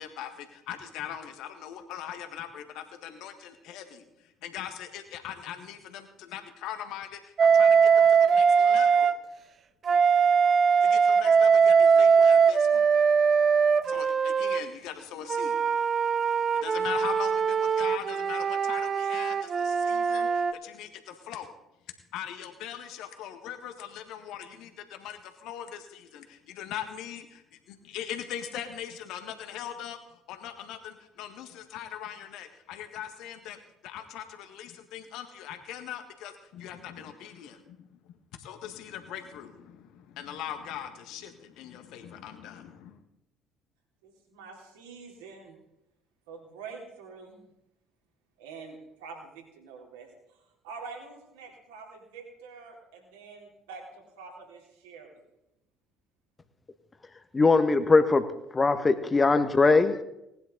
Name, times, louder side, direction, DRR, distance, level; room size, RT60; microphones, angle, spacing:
voice 1, 0.0-9.2 10.8-12.9 13.8-15.6 16.5-21.5 22.1-38.1 38.4-43.0, left 10 dB, 60° left, 7 dB, 1.6 m, -41 dB
Wind instrument woodwind instrument, 7.4-9.2 9.8-14.6 15.3-20.5, right 6 dB, 40° right, 0.8 m, -21 dB
voice 2, 44.0-45.6 46.3-47.5 48.4-50.1 50.6-55.2, right 4 dB, 70° right, 0 dB, 3.5 m, -46 dB
voice 3, 57.3-58.2 58.5-60.0, left 3 dB, 25° left, 10 dB, 1.3 m, -21 dB
19.0 x 10.5 x 3.9 m, 0.87 s
figure-of-eight pair, 55°, 0 cm